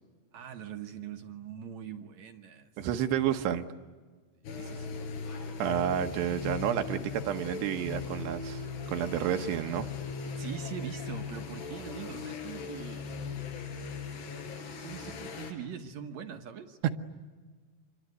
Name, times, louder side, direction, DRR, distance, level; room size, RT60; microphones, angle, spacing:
voice 1, 0.3-2.7 4.5-5.1 10.4-13.1 14.8-16.8, right 8 dB, 70° right, 5 dB, 1.7 m, -42 dB
voice 2, 2.8-3.7 5.6-8.6 8.9-9.9, right 10 dB, 85° right, 6 dB, 3.2 m, -30 dB
sound 1, 4.4-15.5, left 5 dB, 85° left, 5.2 m, -39 dB
27.5 x 23.0 x 9.5 m, 1.4 s
omnidirectional pair, 4.7 m